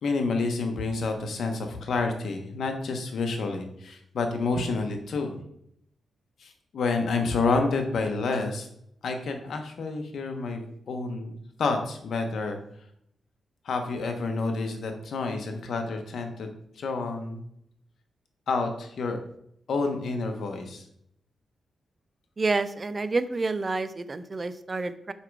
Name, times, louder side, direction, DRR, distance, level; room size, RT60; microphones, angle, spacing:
voice 1, 0.0-5.4 6.4-8.7 9.0-11.3 11.6-12.6 13.6-16.5 16.8-17.4 18.5-19.2 19.7-20.8, left 3 dB, 70° left, 5 dB, 1.2 m, -29 dB
voice 2, 22.4-25.1, right 3 dB, 30° right, 12 dB, 0.5 m, -28 dB
5.8 x 5.2 x 4.8 m, 0.72 s
wide cardioid pair, 110°, 0 cm